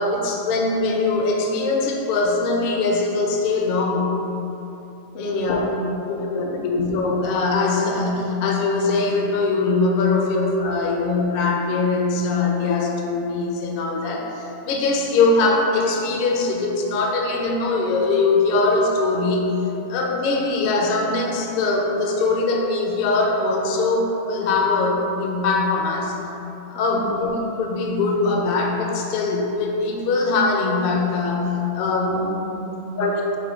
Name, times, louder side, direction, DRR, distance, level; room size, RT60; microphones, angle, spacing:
voice 1, 0.0-4.2 5.2-5.6 6.1-19.5 19.9-26.2 26.7-27.3 27.6-32.2 32.9-33.4, left 3 dB, 65° left, 0 dB, 0.6 m, -22 dB
voice 2, 5.1-6.7 26.7-27.2 32.1-33.0, equal, 80° left, -3 dB, 1.1 m, -33 dB
5.2 x 2.2 x 4.2 m, 2.9 s
omnidirectional pair, 1.4 m